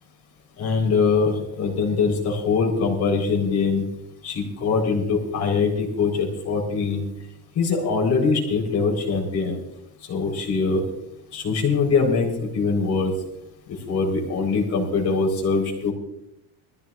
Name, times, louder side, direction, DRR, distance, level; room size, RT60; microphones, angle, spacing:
voice 1, 0.6-3.8 4.2-7.0 7.5-9.6 10.1-10.8 11.3-13.1 13.9-15.9, left 4 dB, 40° left, 1 dB, 4.1 m, -22 dB
22.0 x 14.5 x 2.5 m, 0.79 s
cardioid pair, 160°, 42 cm